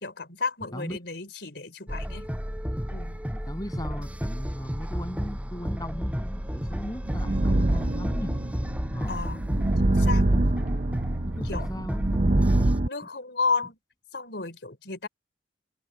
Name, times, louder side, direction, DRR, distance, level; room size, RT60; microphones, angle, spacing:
voice 1, 0.0-2.3 2.9-3.2 9.1-9.4 9.8-10.3 11.4-11.7 12.8-13.8 14.1-15.1, left 4 dB, 65° left, 4.3 m, -32 dB
sound 1, 1.9-12.8, equal, 10° right, 7.3 m, -32 dB
voice 2, 3.3-8.3 8.9-9.2 11.2-12.4, equal, 20° left, 7.8 m, -38 dB
sound 2, 6.4-12.9, right 2 dB, 45° right, 0.8 m, -25 dB
open air
head